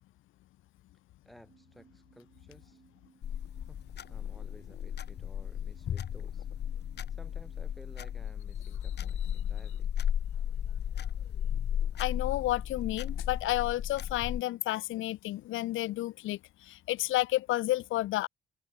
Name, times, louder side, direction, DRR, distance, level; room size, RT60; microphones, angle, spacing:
voice 1, 1.2-2.8 3.7-6.5 7.1-9.9, equal, ahead, 6.5 m, -56 dB
sound 1, 1.5-8.3, right 7 dB, 45° right, 6.7 m, -64 dB
sound 2, 3.2-14.4, left 9 dB, 60° left, 1.7 m, -35 dB
voice 2, 12.0-16.4 16.9-18.3, left 16 dB, 80° left, 0.9 m, -31 dB
cardioid pair, 90°, 20 cm